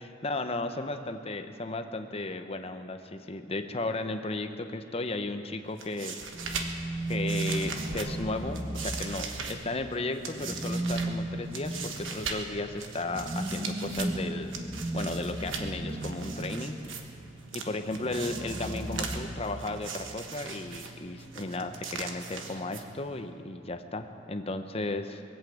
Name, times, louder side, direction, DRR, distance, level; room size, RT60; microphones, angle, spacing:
voice 1, 0.2-6.2 7.1-14.5 14.9-16.8 17.5-25.2, left 2 dB, 30° left, 7 dB, 0.8 m, -34 dB
sound 1, 5.6-23.2, right 5 dB, 90° right, 1.3 m, -40 dB
sound 2, 6.3-9.7 10.3-16.9 17.9-19.9, right 1 dB, 20° right, 1.0 m, -35 dB
21.5 x 8.3 x 7.9 m, 2.7 s
head